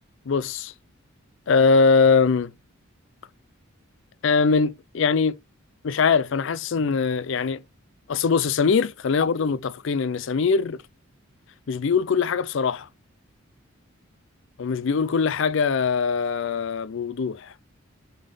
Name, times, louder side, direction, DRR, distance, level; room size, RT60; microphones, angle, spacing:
voice 1, 0.3-0.7 1.5-2.5 4.2-5.4 5.8-7.6 8.1-10.8 11.7-12.9 14.6-17.5, left 5 dB, 60° left, 0.4 m, -22 dB
5.2 x 3.6 x 5.3 m
head